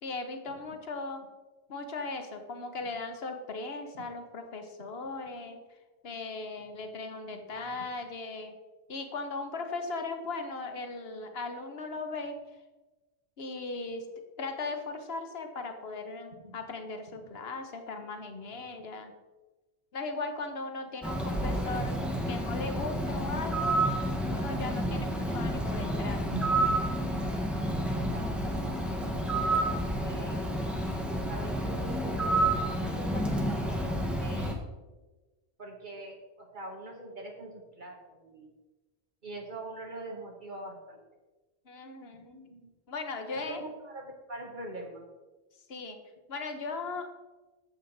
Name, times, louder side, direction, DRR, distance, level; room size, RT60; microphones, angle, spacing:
voice 1, 0.0-1.2 1.7-5.6 6.0-8.6 8.9-12.4 13.4-14.1 14.4-19.1 19.9-22.0 22.3-23.8 24.3-26.3 41.7-42.4 42.9-43.6 45.7-46.0 46.3-47.1, left 3 dB, 65° left, 6 dB, 1.3 m, -38 dB
voice 2, 7.5-7.9 16.4-16.6 26.3-26.8 27.7-28.2 29.4-30.4 31.3-34.6 35.6-38.5 39.2-41.0 42.1-42.7 43.3-45.1, right 2 dB, 50° right, 0 dB, 1.2 m, -43 dB
Bird, 21.0-34.5, right 1 dB, ahead, 1.0 m, -30 dB
9.4 x 7.5 x 4.0 m, 1.2 s
omnidirectional pair, 1.1 m